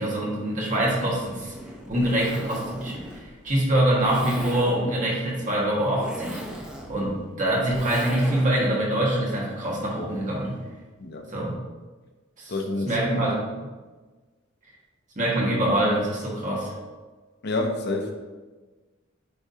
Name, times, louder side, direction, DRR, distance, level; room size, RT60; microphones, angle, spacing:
voice 1, 0.0-1.5 1.9-6.4 6.9-10.6 11.3-11.5 12.4-12.5 12.9-13.4 15.1-16.7, right 1 dB, 40° right, -4 dB, 1.6 m, -24 dB
Zipper (clothing), 0.7-8.7, equal, 5° right, 0.6 m, -38 dB
voice 2, 12.5-13.1 17.4-18.1, left 2 dB, 55° left, 3 dB, 0.7 m, -28 dB
9.5 x 3.6 x 2.8 m, 1.3 s
head